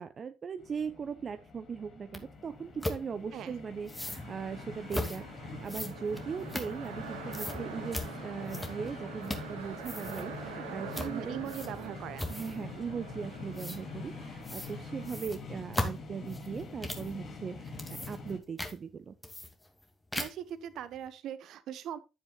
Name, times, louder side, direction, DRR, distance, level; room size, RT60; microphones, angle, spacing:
voice 1, 0.0-11.4 12.3-19.2, right 6 dB, 40° right, 0.8 m, -39 dB
sound 1, 0.6-18.4, left 3 dB, 45° left, 3.4 m, -44 dB
sound 2, 2.1-2.2 2.8-3.0 3.9-4.2 4.9-5.2 5.7-7.0 7.3-7.6 7.9-8.1 8.5-8.9 9.2-9.5 9.8-10.3 10.9-11.1 11.5-11.8 12.2-12.6 13.6-13.8 14.4-14.7 15.0-17.1 17.6-18.3 18.6-18.7 19.2-19.8 20.1-20.5, left 1 dB, 10° left, 2.5 m, -37 dB
sound 3, 4.0-15.3, right 5 dB, 75° right, 2.5 m, -46 dB
voice 2, 11.0-12.4 20.2-22.0, right 10 dB, 55° right, 1.2 m, -40 dB
11.5 x 9.5 x 2.4 m
figure-of-eight pair, 55°, 0 cm